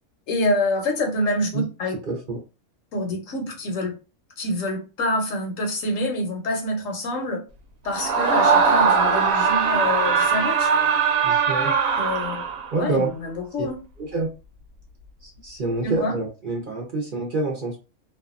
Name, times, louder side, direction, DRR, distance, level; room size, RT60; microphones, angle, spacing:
voice 1, 0.3-1.9 2.9-3.9 4.4-7.4 7.8-10.7 12.0-12.5 12.8-13.8 15.8-16.1, left 1 dB, 75° left, 1.1 m, -26 dB
voice 2, 2.1-2.4 11.2-11.7 12.7-13.1 13.6-13.7 14.0-14.3 15.2-17.8, right 3 dB, 50° right, 0.7 m, -27 dB
Screaming, 7.9-12.8, right 5 dB, 90° right, 1.0 m, -20 dB
2.6 x 2.3 x 2.4 m
omnidirectional pair, 1.4 m